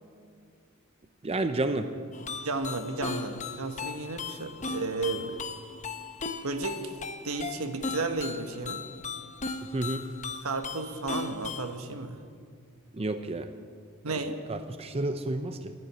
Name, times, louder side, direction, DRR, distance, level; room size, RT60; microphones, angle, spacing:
voice 1, 1.2-1.9 9.7-10.0 12.9-13.5 14.5-15.7, right 2 dB, 30° right, 8 dB, 0.6 m, -30 dB
sound 1, 2.1-11.8, left 4 dB, 35° left, 0.8 m, -37 dB
voice 2, 2.4-5.4 6.4-6.9 7.2-8.8 10.4-12.2 14.0-14.4, right 3 dB, 75° right, 7 dB, 1.3 m, -33 dB
13.5 x 11.0 x 9.4 m, 2.1 s
head